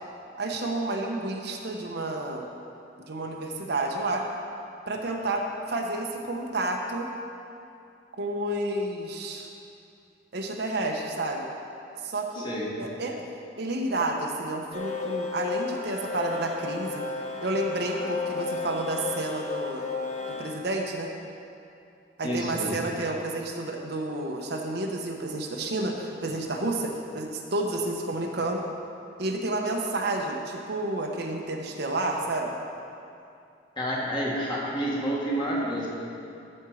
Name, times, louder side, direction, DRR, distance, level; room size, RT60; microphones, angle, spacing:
voice 1, 0.4-2.4 3.1-4.3 4.9-7.1 8.2-9.5 10.3-11.5 12.0-12.4 12.8-13.2 13.6-17.1 17.4-19.8 20.3-21.1 22.2-28.6 29.2-32.6, right 2 dB, 60° right, 1 dB, 0.9 m, -30 dB
voice 2, 12.4-12.9 22.2-22.7 33.8-35.9, equal, 25° left, -5 dB, 1.8 m, -29 dB
sound 1, 14.7-20.5, left 4 dB, 45° left, 1.1 m, -33 dB
13.0 x 4.5 x 6.4 m, 2.6 s
head